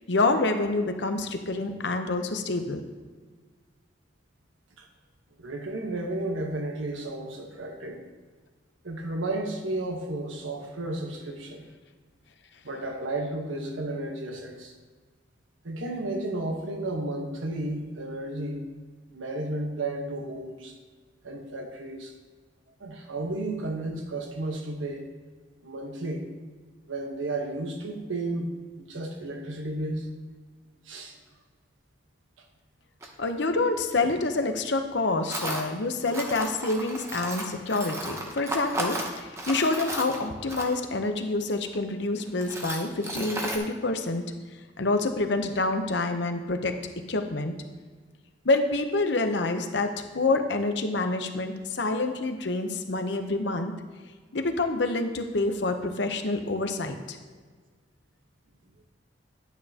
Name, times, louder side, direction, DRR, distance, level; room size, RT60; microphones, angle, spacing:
voice 1, 0.1-2.8 33.2-44.2 44.8-46.8 47.1-47.5 48.4-53.7 54.3-57.2, left 2 dB, 65° left, 6 dB, 0.8 m, -27 dB
voice 2, 5.4-8.0 8.8-11.7 12.6-14.7 15.6-18.6 19.1-20.7 21.2-22.1 22.8-25.1 25.6-26.3 26.9-28.5 28.8-30.1 30.9-31.2 33.0-33.1, right 2 dB, 90° right, 3 dB, 1.2 m, -33 dB
Tools, 33.0-33.1 35.3-35.7 36.1-41.0 41.7-41.8 42.2-43.6, right 1 dB, 15° right, 0.8 m, -34 dB
10.5 x 9.2 x 2.9 m, 1.4 s
head